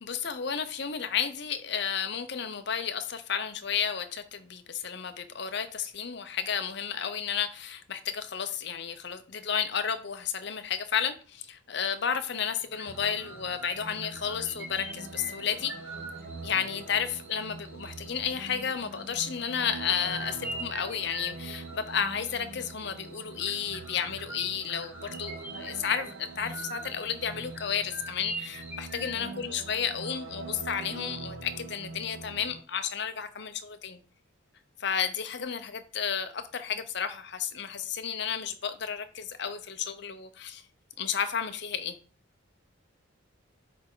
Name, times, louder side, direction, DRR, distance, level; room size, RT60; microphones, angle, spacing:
voice 1, 0.0-15.7 16.4-34.0 34.8-40.6 41.0-42.0, left 7 dB, 55° left, 0.6 m, -32 dB
sound 1, 11.9-12.2 12.4-29.2, right 1 dB, 10° right, 1.1 m, -44 dB
sound 2, 12.9-32.6, right 3 dB, 70° right, 0.9 m, -44 dB
9.3 x 3.4 x 3.8 m
head